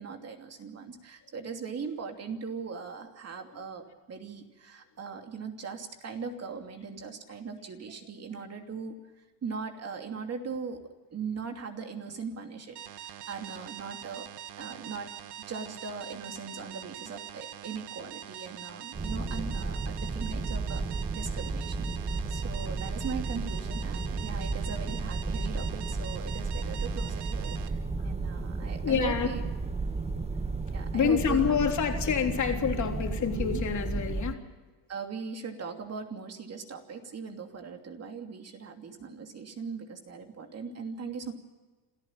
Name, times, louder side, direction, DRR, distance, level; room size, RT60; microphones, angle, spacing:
voice 1, 0.0-9.0 9.4-10.8 11.1-14.3 14.6-15.1 15.4-29.4 30.7-31.6 34.9-41.3, right 5 dB, 35° right, 4 dB, 2.9 m, -39 dB
sound 1, 12.8-27.7, right 11 dB, 60° right, 1.7 m, -44 dB
sound 2, 18.9-34.3, right 3 dB, 15° right, 1.1 m, -33 dB
voice 2, 28.8-29.3 30.1-30.2 30.9-34.4, left 7 dB, 40° left, 3 dB, 3.5 m, -27 dB
27.0 x 14.0 x 7.4 m, 1.3 s
cardioid pair, 120°, 44 cm